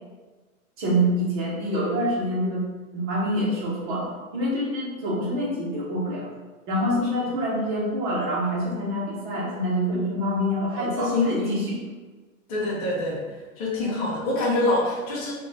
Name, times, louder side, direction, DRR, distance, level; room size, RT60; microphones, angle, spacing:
voice 1, 0.8-2.6 2.9-6.3 6.7-11.8, equal, 35° right, -5 dB, 1.2 m, -26 dB
voice 2, 10.8-11.7 12.5-13.2 13.6-15.3, left 2 dB, 25° left, -6 dB, 0.8 m, -25 dB
3.8 x 2.6 x 3.3 m, 1.3 s
supercardioid pair, 170°, 42 cm